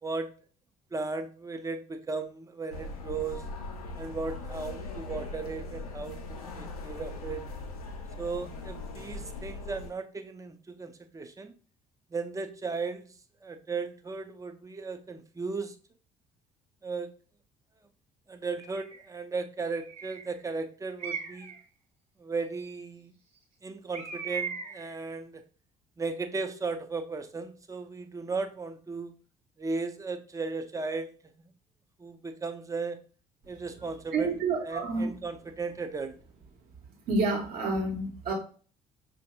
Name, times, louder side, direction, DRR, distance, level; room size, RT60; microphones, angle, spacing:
voice 1, 0.9-3.4 4.0-7.4 8.2-11.5 12.1-15.8 16.8-17.1 18.3-21.5 22.2-23.1 23.6-25.4 26.0-29.2 29.6-31.5 32.0-33.0 33.5-34.3 34.6-36.2, right 4 dB, 15° right, 8 dB, 0.5 m, -36 dB
sound 1, 2.7-9.9, left 2 dB, 80° left, 0.5 m, -40 dB
Bird, 18.6-19.0 19.8-20.4 21.0-21.6 23.9-24.9, right 6 dB, 35° right, 1.3 m, -38 dB
voice 2, 34.1-35.1 37.1-38.3, right 3 dB, 55° right, 1 dB, 1.3 m, -29 dB
5.4 x 2.6 x 2.2 m, 0.40 s
figure-of-eight pair, 50°, 19 cm